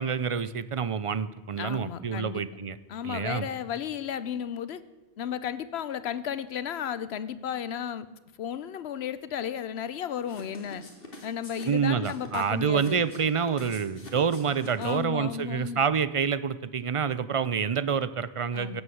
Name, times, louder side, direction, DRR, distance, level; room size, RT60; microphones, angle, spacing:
voice 1, 0.0-2.8 3.0-3.5 11.6-18.8, right 6 dB, 40° right, 15 dB, 0.5 m, -27 dB
voice 2, 1.6-2.4 2.9-4.8 5.2-8.1 8.4-10.8 11.2-13.0 14.8-15.8 18.5-18.8, left 8 dB, 80° left, 15 dB, 1.0 m, -34 dB
sound 1, 10.2-15.2, left 2 dB, 60° left, 2.6 m, -45 dB
16.0 x 8.0 x 7.8 m, 1.1 s
omnidirectional pair, 1.1 m